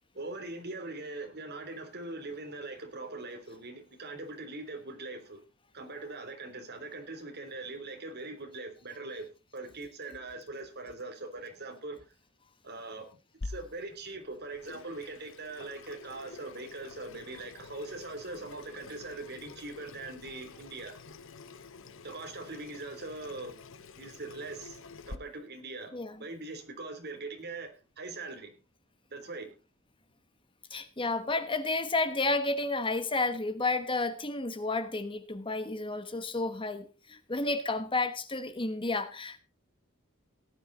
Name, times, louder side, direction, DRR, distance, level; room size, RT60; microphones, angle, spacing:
voice 1, 0.1-5.4 5.7-9.3 9.5-12.1 12.6-13.1 13.4-20.9 22.0-23.6 24.0-25.9 26.2-28.5 29.1-29.6, right 2 dB, 50° right, 3.5 m, -41 dB
Water tap faucet / Sink (filling or washing), 13.4-25.2, left 3 dB, 60° left, 1.0 m, -48 dB
voice 2, 25.9-26.2 30.7-39.4, left 3 dB, 25° left, 1.2 m, -31 dB
17.5 x 9.7 x 4.1 m
head